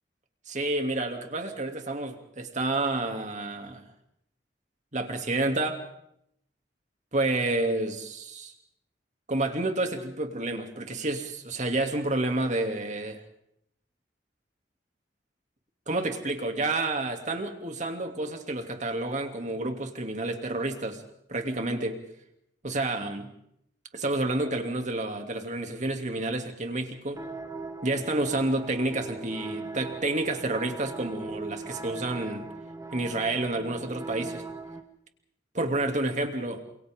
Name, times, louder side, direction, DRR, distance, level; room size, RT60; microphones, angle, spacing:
voice 1, 0.5-3.8 4.9-5.8 7.1-8.5 9.3-13.2 15.9-21.0 21.3-22.0 22.6-23.3 23.9-27.2 27.8-32.5 32.9-34.4 35.5-36.6, right 2 dB, 45° right, 5 dB, 2.9 m, -29 dB
sound 1, 27.1-34.8, right 3 dB, 20° right, 2.0 m, -39 dB
29.0 x 27.5 x 3.8 m, 0.74 s
head